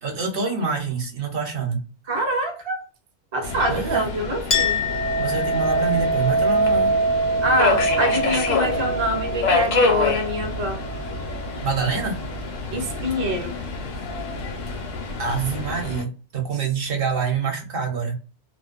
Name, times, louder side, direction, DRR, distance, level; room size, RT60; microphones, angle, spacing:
voice 1, 0.0-1.8 3.7-4.1 5.2-7.0 11.6-12.2 15.2-18.2, right 5 dB, 55° right, 0.8 m, -26 dB
voice 2, 2.1-2.9 3.3-4.8 7.4-10.8 12.7-13.6, equal, 40° right, 0.4 m, -25 dB
Subway metro underground, 3.4-16.0, left 3 dB, 90° left, 1.1 m, -27 dB
Chink clink, 4.5-11.6, right 2 dB, 55° left, 0.5 m, -24 dB
2.5 x 2.1 x 2.4 m
omnidirectional pair, 1.2 m